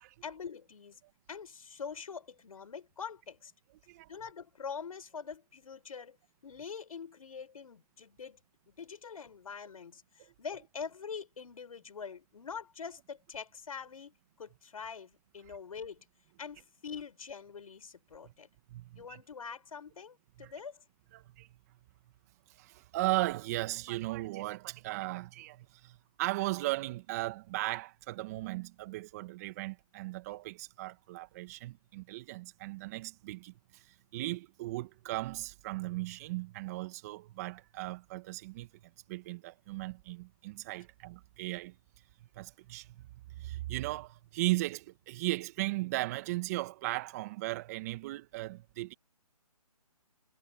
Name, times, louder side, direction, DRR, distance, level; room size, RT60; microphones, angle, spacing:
voice 1, 0.2-1.0 1.3-3.5 4.1-6.2 6.4-8.4 8.8-16.0 16.4-18.5 18.9-20.8, left 6 dB, 65° left, 6.3 m, -44 dB
voice 2, 18.7-19.2 20.4-20.5 21.1-21.5 22.5-38.7 39.1-41.7 42.4-43.0 43.4-48.9, right 19 dB, 25° right, 1.8 m, -37 dB
hypercardioid pair, 155°, 20 cm